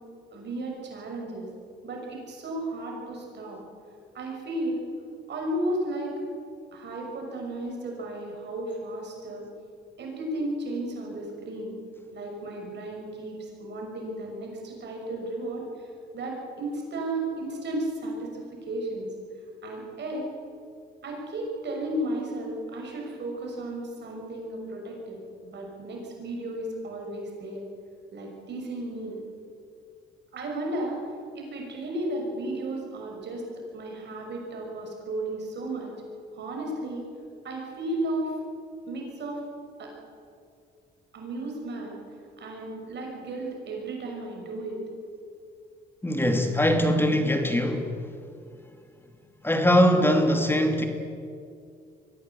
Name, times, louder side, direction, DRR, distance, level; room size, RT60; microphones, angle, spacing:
voice 1, 0.3-1.5 1.8-3.6 4.1-4.8 5.3-6.1 6.7-9.4 10.0-11.7 12.1-15.6 16.1-19.1 19.6-20.2 21.0-27.6 28.1-29.2 30.3-31.0 31.3-33.4 33.7-35.9 36.3-37.0 37.4-38.3 38.9-39.4 39.8-39.9 41.1-42.0 42.4-44.8, right 1 dB, 60° right, 0 dB, 6.2 m, -34 dB
voice 2, 46.0-48.0 49.4-50.9, equal, 10° left, 5 dB, 2.6 m, -22 dB
22.5 x 15.5 x 8.5 m, 2.4 s
cardioid pair, 90°, 20 cm